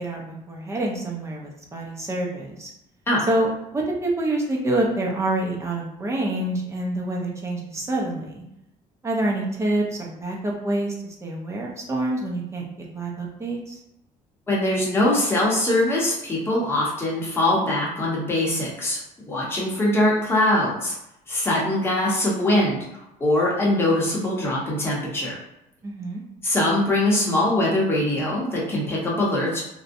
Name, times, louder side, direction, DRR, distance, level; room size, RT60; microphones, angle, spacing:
voice 1, 0.0-2.7 3.3-8.4 9.0-13.8 25.8-26.2, right 1 dB, 20° right, -1 dB, 0.4 m, -27 dB
voice 2, 14.5-19.0 19.3-20.9 21.3-22.8 23.2-25.4 26.4-29.6, left 1 dB, 15° left, -5 dB, 0.8 m, -22 dB
2.5 x 2.1 x 2.6 m, 0.82 s
cardioid pair, 150°, 15 cm